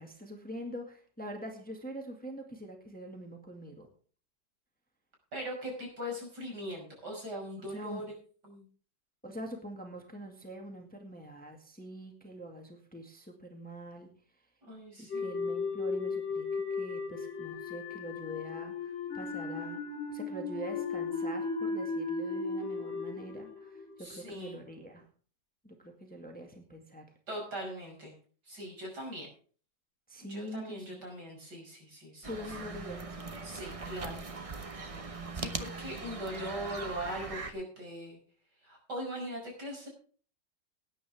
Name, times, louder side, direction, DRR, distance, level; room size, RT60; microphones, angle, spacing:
voice 1, 0.0-3.9 7.6-8.1 9.2-14.1 15.0-19.8 20.1-25.1 25.6-27.1 30.1-31.0 32.3-33.2 36.8-36.9, equal, 5° left, 3 dB, 1.9 m, -44 dB
voice 2, 5.3-8.0 8.5-8.7 14.7-15.4 24.0-24.6 27.3-28.1 28.5-29.3 30.3-32.3 33.4-34.2 35.3-38.2 38.6-39.9, equal, 65° right, 0 dB, 6.4 m, -40 dB
sound 1, 15.1-24.3, left 4 dB, 35° left, 2.8 m, -36 dB
sound 2, 32.2-37.5, right 3 dB, 30° right, 0.7 m, -40 dB
19.0 x 9.8 x 3.5 m, 0.43 s
omnidirectional pair, 1.9 m